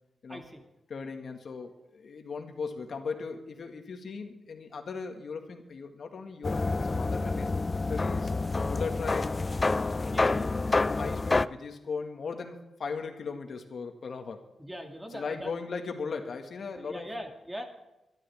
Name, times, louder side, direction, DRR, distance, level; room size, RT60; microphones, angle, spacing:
voice 1, 0.3-0.6 10.1-10.6 14.6-15.5 16.7-17.6, equal, 10° right, 4 dB, 2.2 m, -41 dB
voice 2, 0.9-7.5 7.9-9.4 9.8-14.4 15.1-17.1, left 5 dB, 60° left, 4 dB, 1.8 m, -38 dB
sound 1, 6.4-11.5, left 3 dB, 30° left, 0.4 m, -28 dB
24.0 x 12.0 x 3.5 m, 0.97 s
cardioid pair, 80°, 0 cm